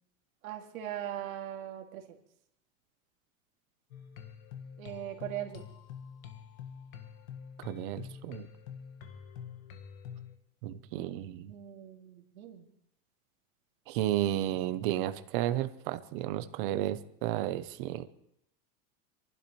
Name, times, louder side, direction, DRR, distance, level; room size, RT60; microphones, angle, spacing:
voice 1, 0.4-2.0 4.8-5.6 11.5-12.7, right 12 dB, 85° right, 2 dB, 2.3 m, -40 dB
sound 1, 3.9-10.3, left 8 dB, 85° left, 1.7 m, -46 dB
voice 2, 7.6-8.5 10.6-11.5 13.9-18.0, right 13 dB, 40° right, 11 dB, 0.7 m, -32 dB
28.0 x 12.0 x 3.1 m, 0.76 s
supercardioid pair, 170°, 40 cm